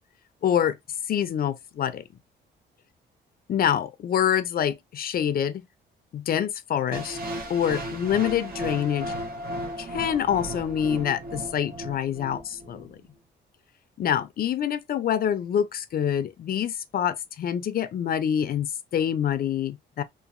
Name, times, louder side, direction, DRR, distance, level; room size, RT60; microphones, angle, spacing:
voice 1, 0.4-0.8 1.1-2.0 3.5-5.6 6.1-7.2 7.5-9.1 9.8-13.0 14.0-20.0, left 9 dB, 50° left, 0.4 m, -26 dB
sound 1, 6.9-12.9, right 1 dB, 50° right, 0.9 m, -35 dB
2.8 x 2.3 x 2.5 m
cardioid pair, 90°, 20 cm